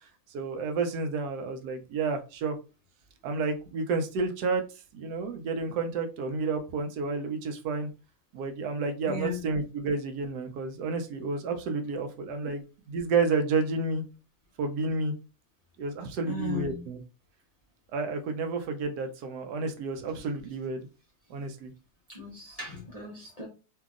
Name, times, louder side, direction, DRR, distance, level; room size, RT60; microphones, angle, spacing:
voice 1, 0.3-2.6 3.2-4.6 4.9-7.9 8.3-14.0 14.6-15.1 15.8-17.0 17.9-20.9 21.3-21.7, right 4 dB, 90° right, 6 dB, 1.2 m, -30 dB
voice 2, 9.1-9.4 12.4-12.5 16.2-16.8 22.1-23.5, left 4 dB, 40° left, -3 dB, 0.5 m, -36 dB
2.8 x 2.6 x 2.4 m, 0.32 s
omnidirectional pair, 1.7 m